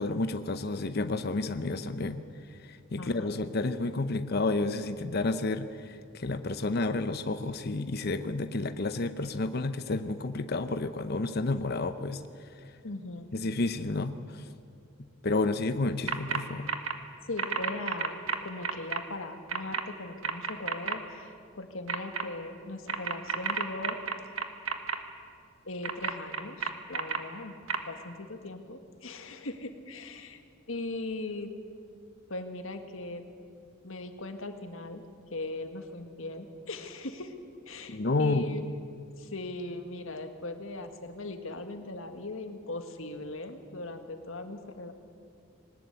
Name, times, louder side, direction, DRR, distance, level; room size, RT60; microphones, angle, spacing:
voice 1, 0.0-2.2 2.5-12.7 13.3-14.5 15.2-16.7 37.9-38.5, left 2 dB, 50° left, 10 dB, 0.8 m, -31 dB
voice 2, 3.0-3.3 12.8-13.3 17.3-24.0 25.7-27.5 27.8-30.4 30.7-31.5 32.3-33.2 33.8-35.0 35.3-37.3 37.7-38.8 39.2-44.9, left 2 dB, 75° left, 7 dB, 1.9 m, -39 dB
sound 1, 16.1-16.4 16.7-16.9 17.4-19.0 19.5-19.8 20.2-20.9 21.9-22.2 22.9-25.0 25.8-27.2 27.7-27.8, right 6 dB, 90° right, 1.5 m, -30 dB
20.5 x 19.5 x 8.2 m, 2.4 s
head